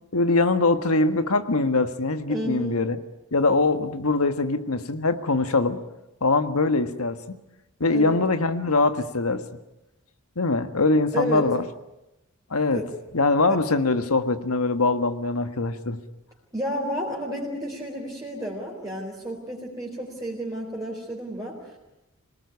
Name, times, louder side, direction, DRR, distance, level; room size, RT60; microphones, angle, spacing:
voice 1, 0.1-3.0 3.3-5.8 6.2-7.4 7.8-9.4 10.4-11.6 12.5-12.8 13.1-16.0, left 3 dB, 90° left, 9 dB, 1.6 m, -22 dB
voice 2, 2.3-2.8 7.9-8.2 11.1-11.5 12.7-12.8 16.5-21.8, equal, 15° right, -4 dB, 4.1 m, -31 dB
26.0 x 19.5 x 9.7 m, 0.96 s
head